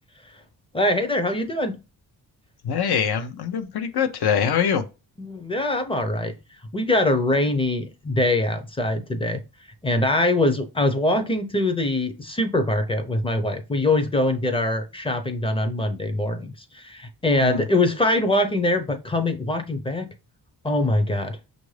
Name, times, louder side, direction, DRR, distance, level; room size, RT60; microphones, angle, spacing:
voice 1, 0.7-1.8 5.2-6.4 6.7-9.4 9.8-20.1 20.6-21.4, left 1 dB, 15° left, 0.5 m, -23 dB
voice 2, 2.6-4.8 17.4-17.6, left 7 dB, 75° left, 0.7 m, -23 dB
6.0 x 2.6 x 3.2 m
wide cardioid pair, 145°, 39 cm